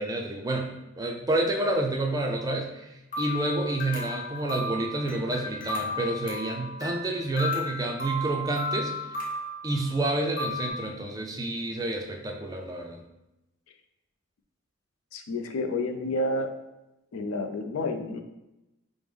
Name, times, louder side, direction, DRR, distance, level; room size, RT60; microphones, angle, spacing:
voice 1, 0.0-8.9 9.6-13.0, right 2 dB, 15° right, 1 dB, 0.3 m, -29 dB
sound 1, 3.1-10.7, left 2 dB, 40° left, 0.8 m, -34 dB
voice 2, 15.1-16.5 17.1-18.2, left 2 dB, 85° left, 5 dB, 0.4 m, -30 dB
4.9 x 2.0 x 3.4 m, 0.94 s
head